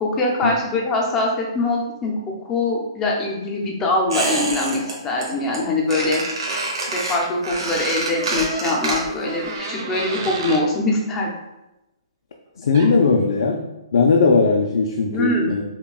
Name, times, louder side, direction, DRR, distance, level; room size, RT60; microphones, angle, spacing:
voice 1, 0.0-2.1 2.4-6.2 6.9-11.3 15.1-15.5, left 2 dB, 10° left, -2 dB, 0.5 m, -23 dB
Squeak, 4.1-4.9 5.2-5.6 5.9-9.3 9.6-9.7, right 2 dB, 70° right, 1.2 m, -26 dB
sound 1, 8.1-10.7 12.7-12.9, right 3 dB, 40° right, 0.6 m, -32 dB
voice 2, 12.6-13.6 13.9-15.6, left 4 dB, 70° left, 2 dB, 0.4 m, -18 dB
5.6 x 2.2 x 2.3 m, 0.94 s
hypercardioid pair, 175°, 3 cm